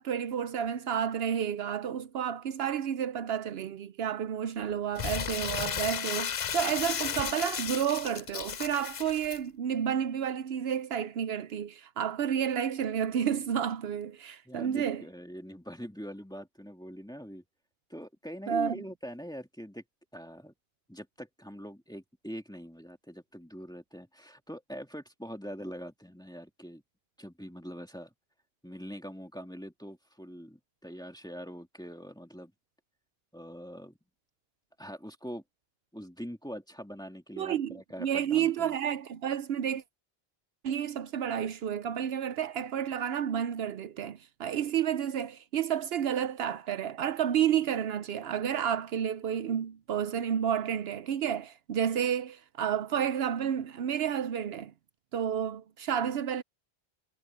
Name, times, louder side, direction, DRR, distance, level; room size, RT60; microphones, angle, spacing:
voice 1, 0.0-15.0 18.5-18.8 37.4-39.8 40.6-54.7 55.1-56.4, right 9 dB, 75° right, 0.9 m, -31 dB
Crumpling crinkling, 5.0-9.4, left 8 dB, 55° left, 0.4 m, -34 dB
voice 2, 14.5-17.4 17.9-19.8 20.1-20.5 20.9-26.8 27.2-28.1 28.6-32.5 33.3-34.0 34.8-35.4 35.9-38.8, equal, 5° left, 2.2 m, -43 dB
omnidirectional pair, 1.1 m